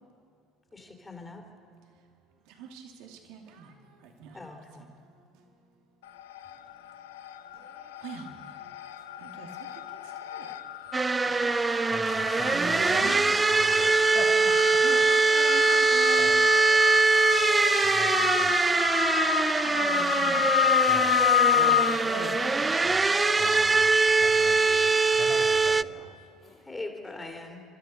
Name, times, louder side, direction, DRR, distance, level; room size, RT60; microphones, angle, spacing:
voice 1, 0.7-1.4 4.3-4.8 11.2-11.6 26.6-27.6, left 2 dB, 15° left, 3 dB, 3.6 m, -41 dB
voice 2, 2.6-3.7 4.2-4.3 4.8-4.9 8.0-8.3 9.2-9.5 10.3-10.5 12.3-13.2 14.8-15.0 15.3-16.3 19.6-20.5 21.5-21.8 22.1-22.9, right 6 dB, 70° right, 2 dB, 2.7 m, -40 dB
sound 1, 6.1-6.7 7.0-23.6, left 11 dB, 80° left, 0.7 m, -30 dB
sound 2, 10.9-25.8, right 3 dB, 20° right, 0.4 m, -23 dB
voice 3, 11.9-15.0 16.2-16.5 16.8-17.1 17.8-18.6 20.9-21.2 22.8-26.7, left 3 dB, 50° left, -6 dB, 3.3 m, -44 dB
30.0 x 13.0 x 6.8 m, 2.3 s
hypercardioid pair, 70°, 0 cm